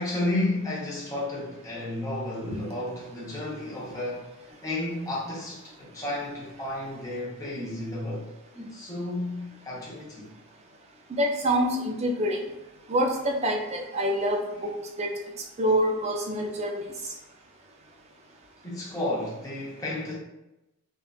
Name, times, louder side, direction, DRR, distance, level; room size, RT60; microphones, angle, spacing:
voice 1, 0.0-4.2 4.6-10.3 18.6-20.1, left 1 dB, 15° left, -6 dB, 0.7 m, -32 dB
voice 2, 11.1-12.4 12.9-14.7 15.0-15.1 15.6-16.8, equal, 30° right, 2 dB, 0.4 m, -26 dB
3.6 x 2.3 x 2.3 m, 0.93 s
head